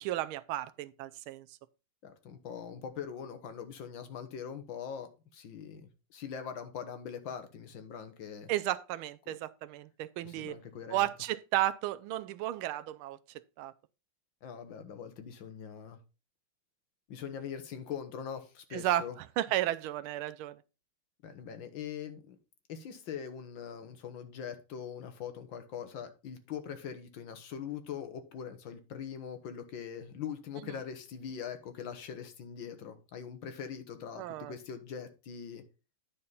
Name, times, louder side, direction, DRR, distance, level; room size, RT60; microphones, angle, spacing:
voice 1, 0.0-1.6 8.5-10.6 10.9-13.2 13.6-13.7 18.7-20.6 34.2-34.5, right 14 dB, 85° right, 1.4 m, -33 dB
voice 2, 2.0-8.5 9.3-9.4 10.2-11.1 14.4-16.0 17.1-19.2 21.2-22.4 22.7-35.6, left 7 dB, 70° left, 1.8 m, -42 dB
9.7 x 4.4 x 5.4 m
omnidirectional pair, 2.3 m